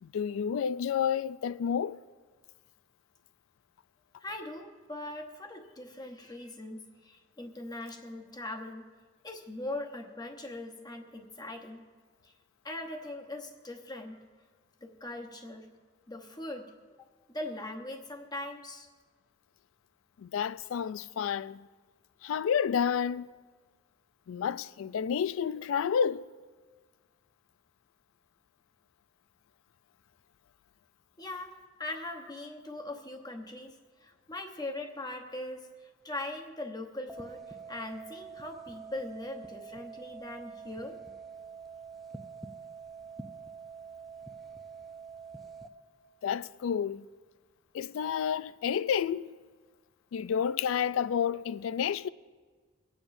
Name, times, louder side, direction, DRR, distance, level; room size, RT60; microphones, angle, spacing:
voice 1, 0.0-2.0 20.2-21.6 22.2-23.3 24.3-26.3 46.2-47.1 47.7-49.3 50.1-52.1, left 7 dB, 85° left, 0.3 m, -30 dB
voice 2, 4.2-8.9 9.2-11.9 12.2-12.3 12.6-14.2 14.8-15.7 16.1-16.7 17.0-17.1 17.3-18.9 31.2-37.4 37.7-41.0, left 2 dB, 20° left, 1.0 m, -41 dB
sound 1, 37.1-45.7, right 5 dB, ahead, 0.5 m, -46 dB
25.0 x 8.8 x 2.6 m
head